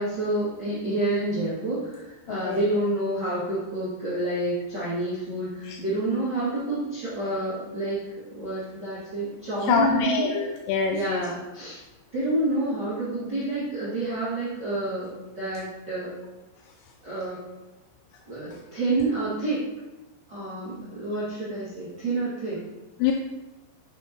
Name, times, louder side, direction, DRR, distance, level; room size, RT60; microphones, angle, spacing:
voice 1, 0.0-10.3 10.9-11.8 12.1-16.1 17.0-17.4 18.3-19.7 20.3-22.6, right 2 dB, 50° right, -10 dB, 1.2 m, -28 dB
voice 2, 2.3-2.6 5.6-5.8 9.6-11.2 23.0-23.1, left 6 dB, 85° left, 3 dB, 2.6 m, -25 dB
9.1 x 5.7 x 3.0 m, 1.1 s
omnidirectional pair, 5.3 m